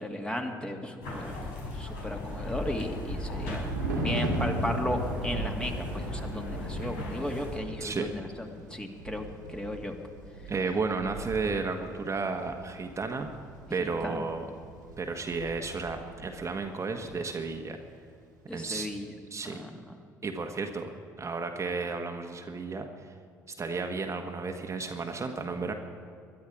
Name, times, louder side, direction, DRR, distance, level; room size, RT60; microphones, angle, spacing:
voice 1, 0.0-1.5 1.7-3.6 4.0-10.0 10.4-10.5 13.8-14.2 18.5-19.1 19.4-20.0, left 1 dB, 10° left, 3 dB, 2.1 m, -35 dB
sound 1, 1.0-7.6, left 1 dB, 70° left, 4.7 m, -37 dB
Thunder, 2.0-16.5 16.8-17.1, right 1 dB, 85° right, 2.2 m, -38 dB
voice 2, 7.8-8.1 10.5-13.3 13.7-14.5 15.0-17.8 18.5-18.9 19.3-19.6 20.2-20.9 21.2-23.1 23.6-25.7, right 4 dB, 30° right, 4 dB, 1.4 m, -33 dB
21.5 x 12.0 x 5.0 m, 2.4 s
figure-of-eight pair, 55°, 10 cm